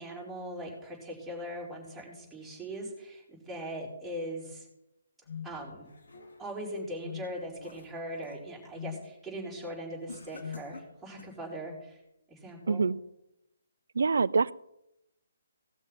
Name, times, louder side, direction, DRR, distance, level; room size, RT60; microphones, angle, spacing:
voice 1, 0.0-4.7 5.4-5.8 6.4-12.0 12.3-12.8, equal, 5° right, -5 dB, 4.4 m, -40 dB
sound 1, 5.3-5.5 7.0-7.3 8.7-9.0 10.4-10.7, left 8 dB, 55° left, 0.6 m, -40 dB
sound 2, 5.5-6.7 7.1-8.5 8.9-9.2 10.1-11.4, left 3 dB, 70° left, 2.1 m, -51 dB
voice 2, 12.7-13.0 14.0-14.5, right 4 dB, 70° right, 21 dB, 0.4 m, -25 dB
17.5 x 6.3 x 5.8 m, 0.87 s
figure-of-eight pair, 140°, 0 cm